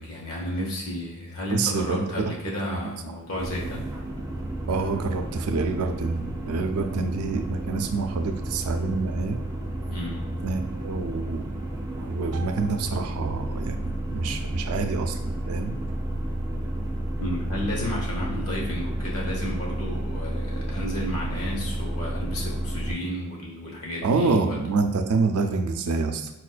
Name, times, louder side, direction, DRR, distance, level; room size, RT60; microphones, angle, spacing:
voice 1, 0.0-3.9 9.9-10.3 17.2-24.6, left 1 dB, 75° left, -2 dB, 1.0 m, -32 dB
voice 2, 1.5-2.3 2.6-2.9 4.7-9.4 10.4-11.5 12.0-15.2 15.5-15.7 24.0-26.3, right 4 dB, 85° right, 6 dB, 0.4 m, -27 dB
sound 1, 3.4-22.9, right 1 dB, 15° right, 0.4 m, -31 dB
4.2 x 2.4 x 2.2 m, 1.0 s
head